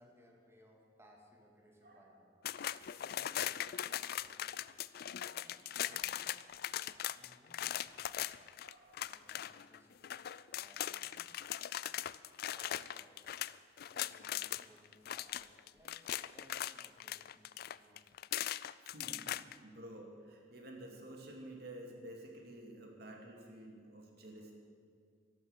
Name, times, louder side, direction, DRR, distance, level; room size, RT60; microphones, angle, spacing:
voice 1, 0.0-2.3 3.0-4.9 5.3-6.3 6.8-8.3 9.0-10.2 10.5-11.3 11.8-12.1 12.4-13.3 13.9-18.0, equal, 15° right, 1 dB, 2.2 m, -64 dB
voice 2, 1.8-2.2 5.0-5.8 6.4-6.9 8.6-9.1 11.2-11.7 12.4-12.7 13.8-13.9 14.3-14.6 18.8-24.5, right 1 dB, 60° right, 1 dB, 2.5 m, -52 dB
sound 1, 2.4-14.6 14.9-19.5, left 12 dB, 55° left, 0.3 m, -40 dB
13.5 x 12.0 x 7.4 m, 2.3 s
head